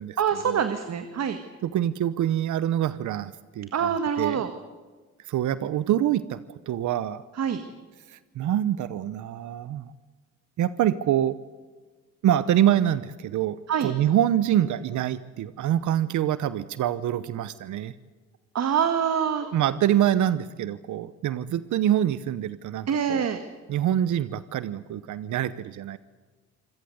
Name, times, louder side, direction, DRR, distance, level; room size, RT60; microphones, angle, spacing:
voice 1, 0.2-1.4 3.7-4.5 7.4-7.6 13.7-13.9 18.5-19.5 22.9-23.4, right 7 dB, 60° right, 9 dB, 1.9 m, -25 dB
voice 2, 1.6-3.9 4.2-4.4 5.3-6.4 6.7-7.2 8.1-9.9 10.6-11.4 12.2-17.9 19.4-23.3 23.7-26.0, right 11 dB, 75° right, 15 dB, 0.9 m, -25 dB
26.5 x 17.5 x 8.0 m, 1.4 s
cardioid pair, 90°, 30 cm